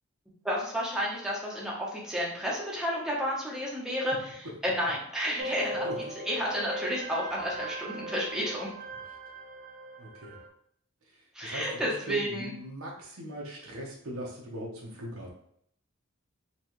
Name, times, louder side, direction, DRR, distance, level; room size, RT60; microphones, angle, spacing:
voice 1, 0.4-5.8 6.3-8.7 11.3-12.5, equal, 5° right, -4 dB, 0.9 m, -31 dB
sound 1, 5.4-10.5, right 1 dB, 45° right, 0.5 m, -39 dB
voice 2, 10.0-10.4 11.4-11.8 12.1-15.3, equal, 90° right, -1 dB, 1.1 m, -39 dB
4.2 x 3.1 x 3.1 m, 0.67 s
head